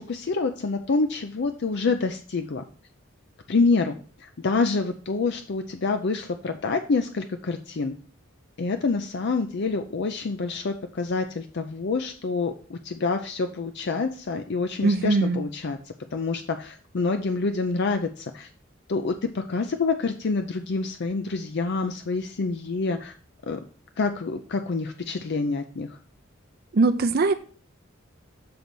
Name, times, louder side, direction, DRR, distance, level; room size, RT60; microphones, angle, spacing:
voice 1, 0.0-2.6 3.5-3.9 4.2-7.9 8.6-15.8 16.1-18.5 18.9-23.1 23.4-23.6 24.0-26.0, left 4 dB, 55° left, 7 dB, 0.5 m, -27 dB
voice 2, 14.8-15.4 26.7-27.3, right 3 dB, 50° right, 7 dB, 0.5 m, -21 dB
6.8 x 4.0 x 6.1 m, 0.40 s
head